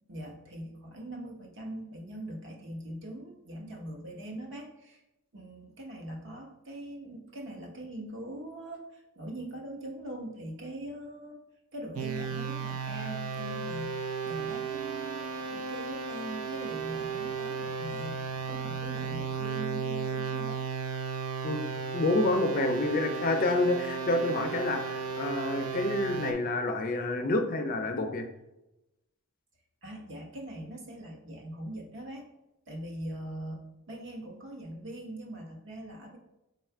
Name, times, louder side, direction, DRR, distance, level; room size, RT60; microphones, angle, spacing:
voice 1, 0.1-5.0 5.3-11.4 11.7-20.6 29.8-32.2 32.7-36.2, right 1 dB, 55° right, 1 dB, 0.9 m, -42 dB
sound 1, 12.0-26.3, right 6 dB, 85° right, 0.5 m, -35 dB
voice 2, 21.9-28.3, left 2 dB, 40° left, 6 dB, 0.4 m, -28 dB
4.7 x 2.4 x 4.4 m, 0.94 s
head